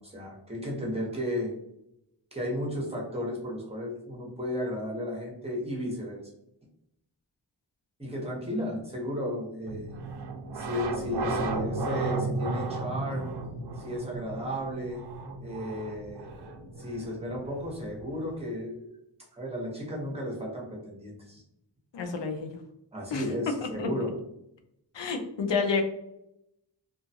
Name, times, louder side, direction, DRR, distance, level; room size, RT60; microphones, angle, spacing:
voice 1, 0.0-1.5 2.3-6.2 8.0-9.9 10.5-13.3 13.8-15.1 15.4-16.3 16.8-19.0 19.3-21.4 22.9-24.1, equal, 15° right, -3 dB, 0.9 m, -34 dB
sound 1, 9.7-18.4, right 2 dB, 65° right, 0.5 m, -35 dB
voice 2, 21.9-22.5 23.1-23.2 23.8-23.9 24.9-25.8, left 4 dB, 85° left, 5 dB, 0.6 m, -29 dB
2.5 x 2.2 x 2.7 m, 0.81 s
wide cardioid pair, 70°, 42 cm